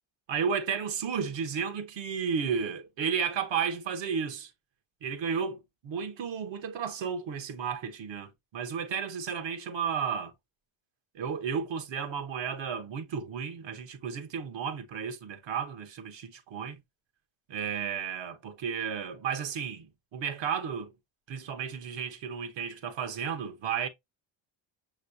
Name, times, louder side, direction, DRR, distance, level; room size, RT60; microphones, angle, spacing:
voice 1, 0.3-4.5 5.0-10.3 11.1-16.8 17.5-19.9 20.1-20.9 21.3-23.9, right 7 dB, 65° right, 1.1 m, -33 dB
6.1 x 3.1 x 2.5 m
cardioid pair, 100°, 48 cm